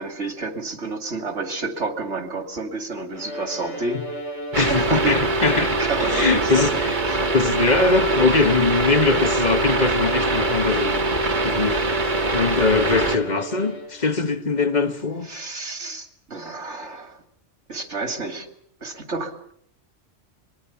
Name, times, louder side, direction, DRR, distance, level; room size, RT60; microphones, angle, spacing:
voice 1, 0.0-4.0 4.6-5.2 5.8-6.8 7.1-7.3 15.2-17.2 17.7-18.5 18.8-19.5, right 3 dB, 75° right, 2.8 m, -30 dB
Bowed string instrument, 3.1-14.2, right 1 dB, 75° left, 6.0 m, -34 dB
voice 2, 4.5-6.9 7.3-11.0 11.4-15.3, left 4 dB, 40° left, 1.4 m, -22 dB
sound 1, 4.5-13.2, right 2 dB, 45° right, 1.4 m, -23 dB
25.0 x 21.5 x 7.1 m
omnidirectional pair, 1.2 m